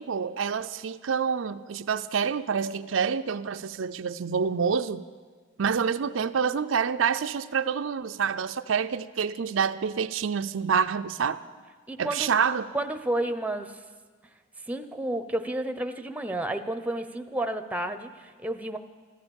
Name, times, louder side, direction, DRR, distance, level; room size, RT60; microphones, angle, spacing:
voice 1, 0.0-5.0 5.6-11.4 12.0-12.7, right 6 dB, 90° right, 10 dB, 0.5 m, -27 dB
voice 2, 11.9-12.4 12.7-13.8 14.7-18.8, right 1 dB, 10° right, 8 dB, 0.7 m, -31 dB
15.0 x 13.0 x 7.1 m, 1.5 s
head